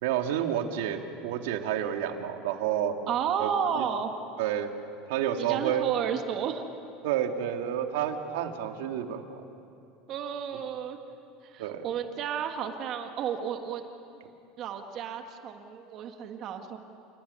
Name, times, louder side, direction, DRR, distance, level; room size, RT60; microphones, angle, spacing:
voice 1, 0.0-2.9 3.4-3.5 3.8-3.9 4.4-4.7 5.1-5.9 7.0-9.4 11.6-11.8, right 10 dB, 85° right, 5 dB, 2.1 m, -30 dB
voice 2, 3.1-4.1 5.4-6.6 10.1-11.0 11.4-13.8 14.6-16.8, right 8 dB, 40° right, 6 dB, 1.6 m, -32 dB
28.0 x 18.0 x 9.5 m, 2.7 s
supercardioid pair, 150°, 0 cm